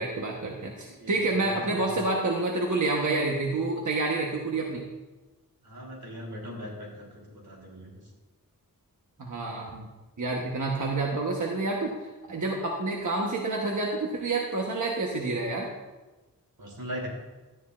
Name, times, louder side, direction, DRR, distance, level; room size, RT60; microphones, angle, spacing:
voice 1, 0.0-4.8 9.2-9.9 10.2-11.9 12.3-15.7, right 2 dB, 55° right, -1 dB, 1.1 m, -28 dB
voice 2, 1.5-2.0 5.6-8.0 16.6-17.1, equal, 85° right, -2 dB, 2.9 m, -40 dB
12.5 x 9.5 x 2.5 m, 1.2 s
wide cardioid pair, 85°, 36 cm